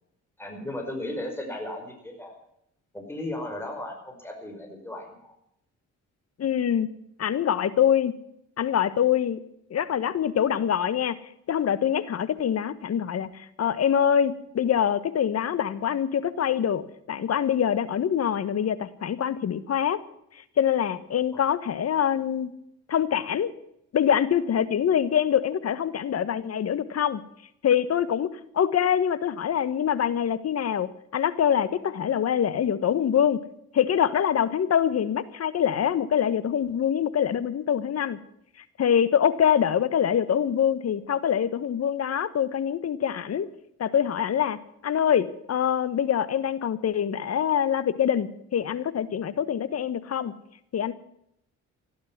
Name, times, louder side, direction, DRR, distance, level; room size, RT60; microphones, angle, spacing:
voice 1, 0.4-2.4 2.9-5.4 21.3-21.4, left 1 dB, 10° left, 2 dB, 5.3 m, -35 dB
voice 2, 6.4-6.9 7.2-8.1 8.6-9.4 9.7-11.2 11.5-20.0 20.6-22.5 22.9-23.5 23.9-27.2 27.6-28.3 28.5-33.4 33.7-38.2 38.8-43.5 43.8-44.6 44.8-50.3 50.7-50.9, left 9 dB, 55° left, 15 dB, 1.4 m, -24 dB
15.5 x 12.0 x 7.5 m, 0.75 s
cardioid pair, 90°, 30 cm